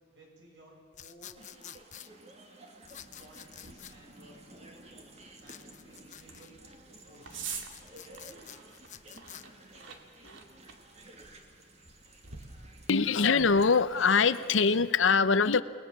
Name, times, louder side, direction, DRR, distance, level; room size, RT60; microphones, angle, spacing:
voice 1, 0.1-1.4 3.2-4.9 5.3-6.6 7.1-7.6, right 1 dB, 65° right, -1 dB, 7.7 m, -56 dB
sound 1, 0.9-2.1 2.9-3.9 5.4-6.5 7.1-9.4, left 10 dB, 40° left, 0.8 m, -49 dB
sound 2, 1.3-14.8, right 2 dB, 35° right, 2.5 m, -54 dB
sound 3, 2.8-13.8, right 6 dB, 80° right, 2.3 m, -49 dB
voice 2, 12.9-15.6, left 5 dB, 80° left, 14 dB, 0.8 m, -23 dB
29.0 x 19.5 x 7.3 m, 2.2 s
head